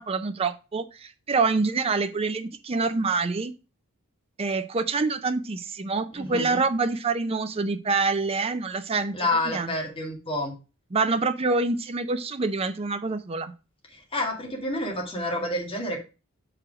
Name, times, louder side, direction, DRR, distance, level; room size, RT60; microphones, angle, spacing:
voice 1, 0.0-3.5 4.4-9.1 9.5-9.7 10.9-13.5, right 4 dB, 25° right, 9 dB, 0.5 m, -26 dB
voice 2, 6.1-6.6 9.1-10.5 13.9-16.0, left 1 dB, 25° left, -1 dB, 2.2 m, -29 dB
6.1 x 4.9 x 4.9 m, 0.31 s
head